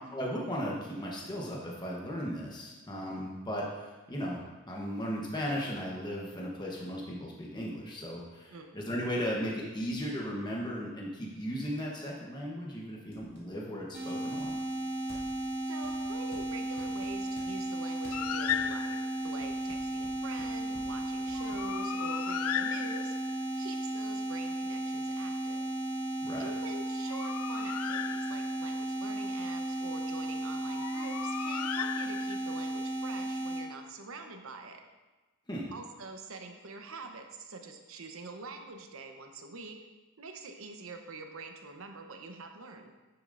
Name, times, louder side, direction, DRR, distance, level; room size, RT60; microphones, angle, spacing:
voice 1, 0.1-14.6 26.2-26.5 35.5-35.7, equal, 20° left, -3 dB, 1.0 m, -36 dB
sound 1, 12.6-12.7 13.1-13.5 14.4-15.5 15.8-17.5 18.0-18.7 19.2-21.7, equal, 45° left, 2.5 m, -52 dB
sound 2, 13.9-33.6, right 1 dB, 45° right, 2.3 m, -35 dB
voice 2, 15.7-19.0 19.2-23.1 23.6-25.6 26.4-34.8 35.7-39.8 40.2-42.9, right 3 dB, 75° right, 4 dB, 0.9 m, -46 dB
Bird, 18.1-19.3 21.3-23.4 26.9-28.7 30.7-32.6, left 10 dB, 90° left, 0.3 m, -36 dB
9.8 x 7.1 x 2.6 m, 1.2 s
head